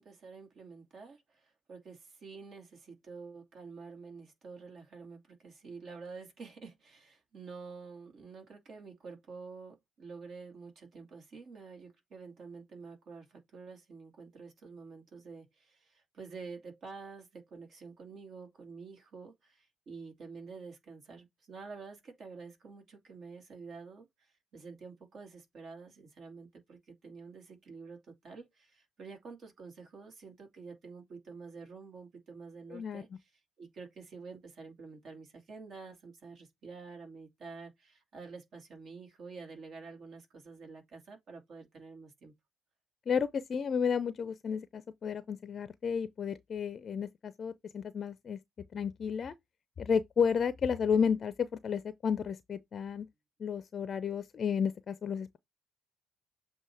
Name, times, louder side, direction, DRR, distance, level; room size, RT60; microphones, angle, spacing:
voice 1, 0.0-33.3 33.6-42.3, right 4 dB, 50° right, 2.5 m, -49 dB
voice 2, 32.7-33.0 43.1-48.4 48.7-49.3 49.8-53.1 53.4-55.4, left 6 dB, 45° left, 0.6 m, -32 dB
7.5 x 2.8 x 4.6 m
hypercardioid pair, 50°, 0 cm